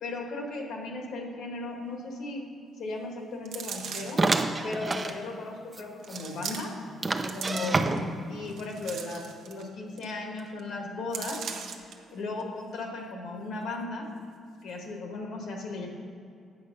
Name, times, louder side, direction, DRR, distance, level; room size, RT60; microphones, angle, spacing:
voice 1, 0.0-2.4 2.8-4.2 4.6-6.7 7.3-7.8 8.2-11.4 12.1-14.1 14.6-15.9, left 2 dB, 75° left, 2 dB, 1.6 m, -36 dB
sound 1, 3.4-4.3 5.1-5.2 6.0-6.9 7.2-8.0 8.5-9.7 10.0-10.1 10.4-10.6 11.1-11.9 12.4-12.5, right 7 dB, 75° right, 0.8 m, -39 dB
sound 2, 4.2-5.2 5.7-5.8 6.1-6.2 7.0-8.3, right 3 dB, 25° right, 0.6 m, -27 dB
8.8 x 6.2 x 5.4 m, 2.5 s
cardioid pair, 90°, 0 cm